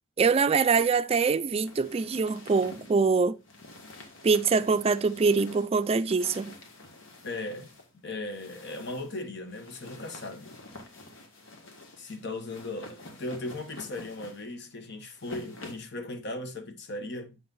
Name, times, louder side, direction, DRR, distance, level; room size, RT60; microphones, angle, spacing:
voice 1, 0.2-3.4 4.2-6.6, right 4 dB, 30° right, 0.4 m, -24 dB
sound 1, 1.6-15.9, left 2 dB, 85° left, 1.7 m, -48 dB
voice 2, 7.2-7.7 8.0-10.5 12.0-17.4, left 2 dB, 60° left, 1.1 m, -37 dB
7.7 x 5.6 x 2.6 m
head